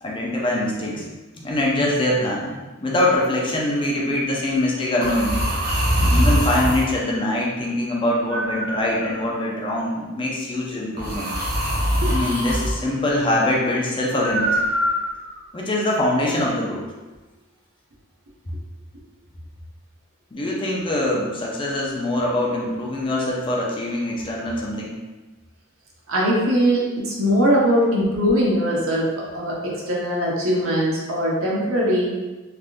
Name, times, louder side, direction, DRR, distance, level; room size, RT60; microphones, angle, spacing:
voice 1, 0.0-5.8 6.1-11.3 12.1-14.6 15.5-16.8 20.3-24.9, left 1 dB, 25° left, -3 dB, 0.5 m, -23 dB
sound 1, 3.0-3.3 5.0-6.9 8.3-9.4 11.0-12.8 14.2-15.4, equal, 45° right, 0.7 m, -23 dB
voice 2, 26.1-32.2, equal, 90° right, -5 dB, 0.9 m, -21 dB
3.4 x 2.5 x 2.5 m, 1.2 s
head